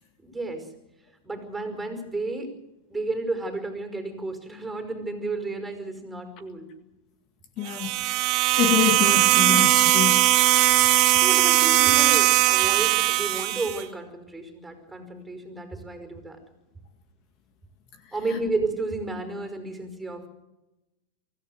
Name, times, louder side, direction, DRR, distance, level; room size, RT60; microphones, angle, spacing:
voice 1, 0.2-0.7 1.2-2.5 2.9-6.7 11.2-16.4 18.1-20.3, right 3 dB, 10° right, 5.2 m, -32 dB
voice 2, 7.6-8.0 8.6-10.3, left 10 dB, 45° left, 1.9 m, -26 dB
sound 1, 7.7-13.8, right 16 dB, 50° right, 2.5 m, -20 dB
24.0 x 16.0 x 7.9 m
hypercardioid pair, 115°, 0 cm